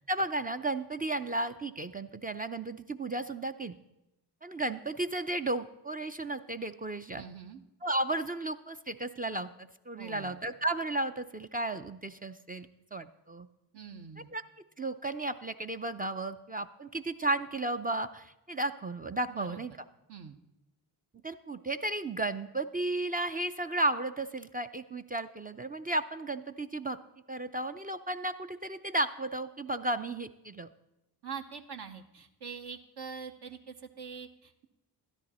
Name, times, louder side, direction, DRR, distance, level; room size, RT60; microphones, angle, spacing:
voice 1, 0.1-3.7 4.4-7.2 7.8-9.5 9.9-13.5 14.3-14.4 14.8-19.7 21.2-27.0 27.3-30.7, right 2 dB, 20° right, 8 dB, 0.4 m, -34 dB
voice 2, 7.1-7.6 10.0-10.4 13.7-14.3 19.3-19.6 20.1-20.4 31.2-34.7, right 6 dB, 55° right, 4 dB, 1.0 m, -44 dB
12.5 x 10.5 x 4.2 m, 0.93 s
supercardioid pair, 50°, 46 cm